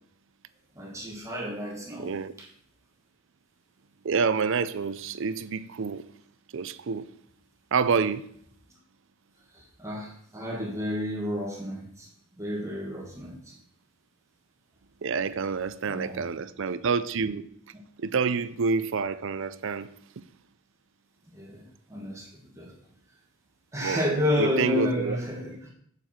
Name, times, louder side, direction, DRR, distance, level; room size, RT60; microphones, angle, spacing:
voice 1, 0.7-2.1 9.5-12.1 12.4-13.5 15.8-16.2 21.3-22.7 23.7-25.7, left 1 dB, 15° right, 1.7 m, -31 dB
voice 2, 2.0-2.3 4.0-6.0 6.5-7.1 7.7-8.3 15.0-17.4 18.0-19.9 23.8-24.0 24.4-25.2, right 5 dB, 65° right, 0.5 m, -28 dB
8.2 x 6.9 x 4.4 m
head